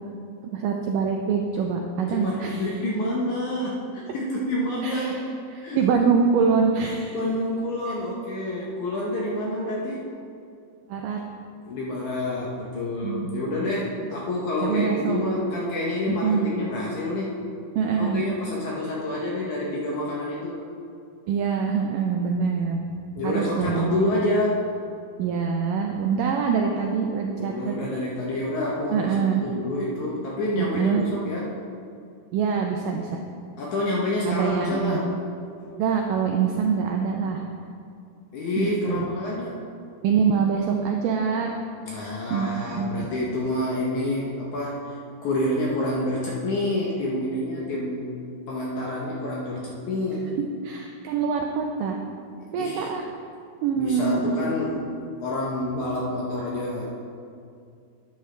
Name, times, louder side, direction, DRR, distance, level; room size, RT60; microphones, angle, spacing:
voice 1, 0.5-2.6 4.8-5.1 5.7-7.2 7.9-8.0 10.9-11.2 13.0-13.3 14.6-15.2 16.1-16.5 17.8-18.2 21.3-22.9 23.2-24.1 25.2-27.7 28.9-29.4 30.6-31.1 32.3-33.1 34.3-35.0 35.7-37.4 38.6-39.1 40.0-41.6 42.3-42.9 50.6-52.0 52.5-53.1 53.6-54.4, right 6 dB, 85° right, 2 dB, 1.9 m, -24 dB
voice 2, 2.1-5.2 5.6-5.8 7.1-10.0 11.6-17.3 18.0-20.7 23.2-24.6 27.4-31.5 33.6-35.1 38.3-39.6 41.9-45.0 45.2-48.2 48.5-50.3 52.6-52.9 53.8-54.8 55.2-56.9, left 1 dB, 70° left, -4 dB, 1.9 m, -28 dB
11.5 x 9.1 x 3.3 m, 2.4 s
omnidirectional pair, 4.4 m